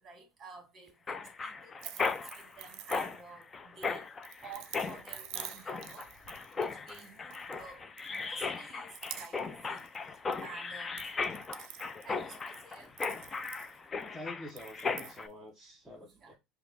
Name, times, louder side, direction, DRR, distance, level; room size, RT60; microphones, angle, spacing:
voice 1, 0.0-4.0 4.4-6.1 6.5-9.4 9.6-9.8 10.4-11.1 12.0-12.9 15.9-16.4, right 4 dB, 25° right, 1.9 m, -51 dB
Mechanisms, 1.1-15.3, left 4 dB, 20° left, 0.4 m, -37 dB
sound 1, 1.8-3.4 3.8-7.7 8.0-8.6 8.9-9.5 9.8-10.5 10.8-14.1 14.5-15.2, right 12 dB, 60° right, 0.5 m, -48 dB
voice 2, 14.1-16.4, left 1 dB, ahead, 0.9 m, -47 dB
5.4 x 2.3 x 3.8 m
supercardioid pair, 135°, 0 cm